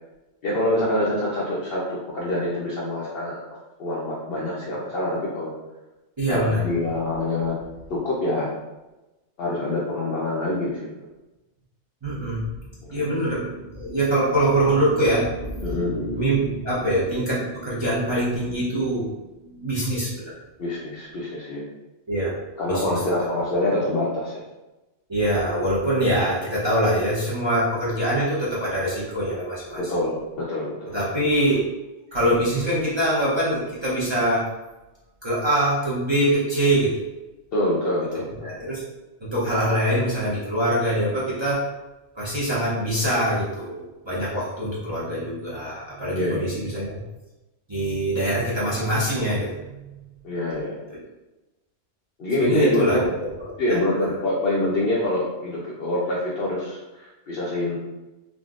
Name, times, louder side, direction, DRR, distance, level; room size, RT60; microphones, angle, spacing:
voice 1, 0.4-3.4 3.8-5.5 6.3-7.6 7.9-8.5 9.4-10.8 12.9-13.0 15.6-16.2 20.6-21.6 22.6-24.4 29.8-31.0 37.5-38.5 46.1-46.6 50.2-50.8 52.2-53.1 53.6-57.8, left 1 dB, 60° left, -7 dB, 0.7 m, -25 dB
voice 2, 6.2-6.6 12.0-12.5 12.9-20.4 22.1-22.4 22.7-22.9 25.1-29.9 30.9-31.6 32.1-34.5 35.2-37.0 38.1-38.8 39.2-41.7 42.2-46.9 47.7-49.6 50.9-51.0 52.4-53.1 53.7-54.1, right 1 dB, 35° right, -9 dB, 0.5 m, -24 dB
3.5 x 2.1 x 2.4 m, 1.0 s
omnidirectional pair, 1.3 m